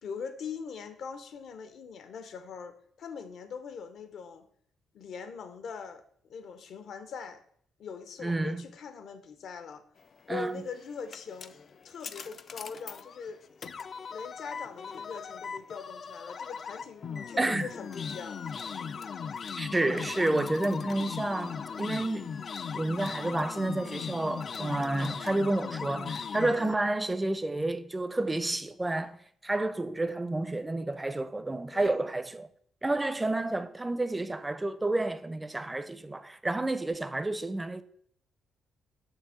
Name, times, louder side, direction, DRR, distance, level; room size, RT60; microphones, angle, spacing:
voice 1, 0.0-4.5 4.9-6.0 6.3-7.4 7.8-9.8 10.3-11.6 11.8-13.4 14.1-18.4 31.7-32.1, left 6 dB, 65° left, 0.7 m, -42 dB
voice 2, 8.2-8.6 10.3-10.6 17.4-17.7 19.6-22.3 22.7-29.2 29.4-32.5 32.8-37.8, right 2 dB, 15° right, 0.5 m, -30 dB
sound 1, 10.5-26.8, left 6 dB, 50° left, 0.3 m, -38 dB
6.8 x 2.7 x 5.7 m
cardioid pair, 90°, 0 cm